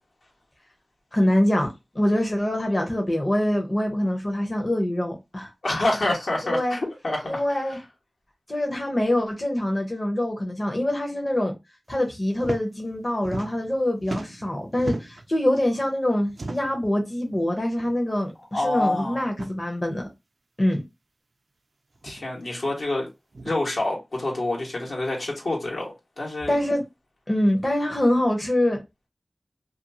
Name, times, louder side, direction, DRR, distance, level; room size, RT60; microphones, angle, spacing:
voice 1, 1.1-1.7 1.9-5.5 6.5-6.8 7.2-7.8 8.5-11.5 11.9-20.1 20.6-20.8 26.5-26.8 27.3-28.8, left 1 dB, 40° left, 0.8 m, -24 dB
voice 2, 5.6-7.4 18.5-19.3 22.0-23.1 23.4-26.5, left 2 dB, 80° left, 1.2 m, -27 dB
sound 1, 12.3-12.6 12.9-13.8 14.0-15.3 16.3-16.8 17.8-17.9 18.3-18.4 19.2-19.5 20.7-20.8 21.9-22.2 23.3-23.6, right 2 dB, 70° right, 0.4 m, -36 dB
2.6 x 2.3 x 2.6 m
cardioid pair, 40°, 0 cm